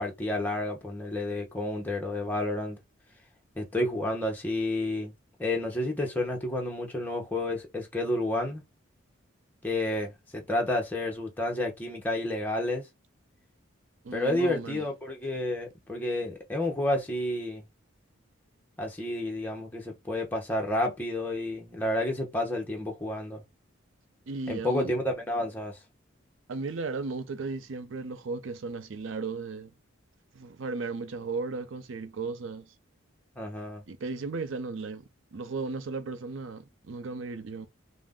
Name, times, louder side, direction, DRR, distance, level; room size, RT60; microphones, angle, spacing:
voice 1, 0.0-2.8 3.6-5.1 5.4-8.6 9.6-12.9 14.1-17.6 18.8-23.4 24.5-25.8 33.4-33.8, left 1 dB, 10° left, 0.7 m, -30 dB
voice 2, 14.0-14.9 24.3-24.9 26.5-29.7 30.3-32.7 33.9-35.0 35.3-37.7, right 4 dB, 70° right, 0.5 m, -35 dB
2.4 x 2.1 x 3.5 m
head